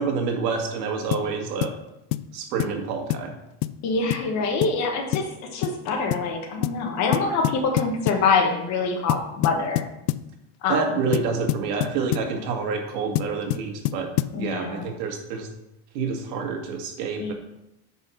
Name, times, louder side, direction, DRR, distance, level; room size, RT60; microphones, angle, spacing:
voice 1, 0.0-1.7 2.3-3.3 10.7-14.1 14.3-15.5 15.9-17.3, right 5 dB, 85° right, 2 dB, 2.2 m, -28 dB
sound 1, 1.1-1.3 1.6-1.8 2.1-2.3 2.6-2.8 3.1-3.3 3.6-3.8 4.1-4.3 4.6-4.8 5.1-5.3 5.6-5.8 6.1-6.3 6.6-6.8 7.1-8.3 9.1-10.3 11.1-12.3 13.2-14.4, left 16 dB, 85° left, 0.6 m, -26 dB
voice 2, 3.8-9.8 10.6-11.0 14.3-14.9 17.2-17.3, left 4 dB, 35° left, 3 dB, 1.3 m, -25 dB
9.3 x 4.5 x 5.9 m, 0.87 s
cardioid pair, 180°, 48 cm